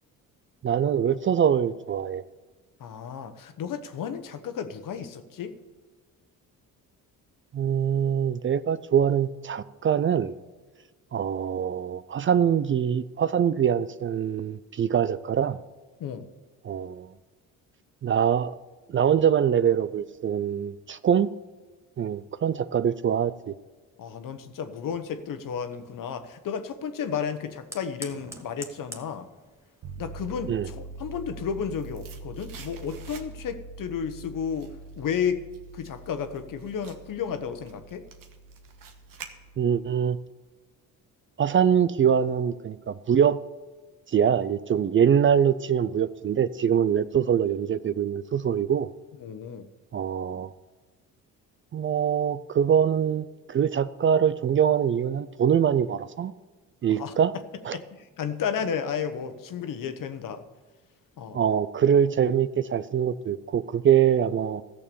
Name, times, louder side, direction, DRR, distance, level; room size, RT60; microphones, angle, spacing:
voice 1, 0.6-2.2 7.5-10.3 11.1-15.6 16.6-17.1 18.0-18.5 18.9-21.3 22.0-23.5 30.5-30.7 39.6-40.2 41.4-43.4 44.1-48.9 49.9-50.5 51.7-56.3 56.8-57.3 57.6-57.8 61.3-64.6, right 8 dB, 35° right, 15 dB, 0.4 m, -23 dB
voice 2, 2.8-5.5 16.0-16.2 24.0-29.3 30.0-34.7 35.0-35.5 35.7-38.1 49.2-49.7 56.9-57.1 57.7-60.4 61.2-61.4, left 7 dB, 60° left, 9 dB, 1.1 m, -32 dB
Fire, 24.8-32.0, right 1 dB, 5° right, 1.4 m, -49 dB
sound 1, 29.8-40.0, right 3 dB, 85° right, 1.4 m, -44 dB
sound 2, 31.7-33.7 34.0-39.9 40.2-40.3, right 6 dB, 65° right, 1.4 m, -49 dB
14.0 x 6.9 x 6.9 m, 1.3 s
cardioid pair, 90°, 36 cm